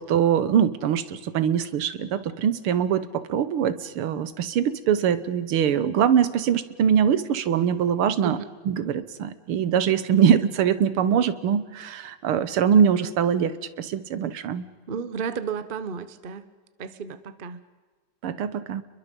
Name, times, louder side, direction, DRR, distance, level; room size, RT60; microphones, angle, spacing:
voice 1, 0.0-8.4 8.7-14.7 18.2-18.8, right 8 dB, 80° right, 14 dB, 2.0 m, -23 dB
voice 2, 14.9-16.4 16.8-17.6, right 6 dB, 35° right, 13 dB, 0.8 m, -33 dB
30.0 x 22.0 x 5.4 m, 1.4 s
omnidirectional pair, 2.4 m